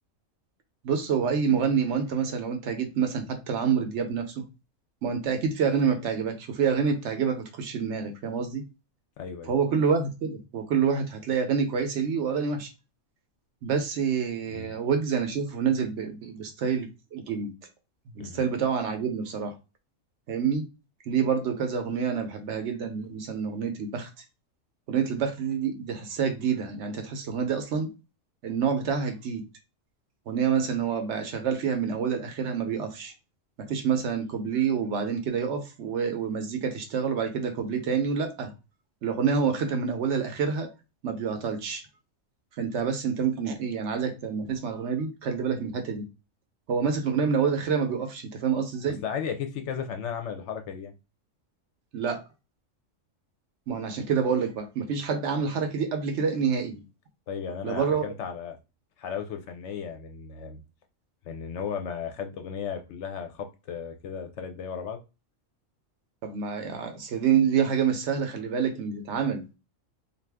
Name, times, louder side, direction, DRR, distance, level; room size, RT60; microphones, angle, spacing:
voice 1, 0.8-4.4 5.0-8.6 9.5-12.7 13.6-17.5 18.1-19.5 20.3-20.7 21.1-24.1 24.9-27.9 28.4-29.4 30.3-33.1 33.6-38.5 39.0-40.7 41.0-41.8 42.6-46.1 46.7-49.0 51.9-52.2 53.7-56.8 57.6-58.1 66.2-69.5, right 6 dB, 65° right, 0.8 m, -27 dB
voice 2, 9.2-9.5 14.5-14.7 18.2-18.4 49.0-50.9 57.3-58.6 59.0-60.6 61.2-65.0, left 7 dB, 70° left, 0.8 m, -35 dB
2.6 x 2.3 x 3.4 m
omnidirectional pair, 1.4 m